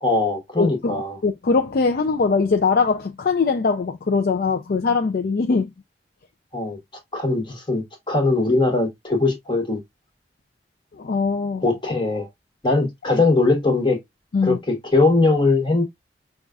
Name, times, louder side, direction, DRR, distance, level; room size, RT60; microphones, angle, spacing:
voice 1, 0.0-1.2 6.5-6.8 7.1-9.8 11.6-12.3 12.6-14.0 14.4-15.8, left 3 dB, 25° left, 1.0 m, -20 dB
voice 2, 0.6-5.7 10.9-11.6 14.3-14.6, left 4 dB, 55° left, 0.4 m, -21 dB
5.3 x 2.3 x 2.3 m
head